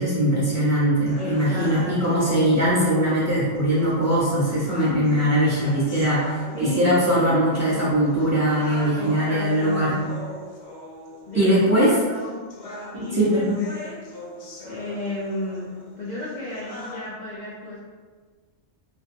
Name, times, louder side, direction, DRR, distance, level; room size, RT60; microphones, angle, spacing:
voice 1, 0.0-10.0 11.3-11.9 13.1-13.6, right 1 dB, 20° right, -10 dB, 0.5 m, -21 dB
sound 1, 1.1-17.1, left 1 dB, 65° left, 0.8 m, -41 dB
voice 2, 1.2-2.5 6.5-7.0 8.9-10.1 11.3-12.4 12.9-14.0 14.6-17.8, left 1 dB, 85° left, -8 dB, 0.4 m, -33 dB
2.6 x 2.1 x 2.6 m, 1.5 s
omnidirectional pair, 1.4 m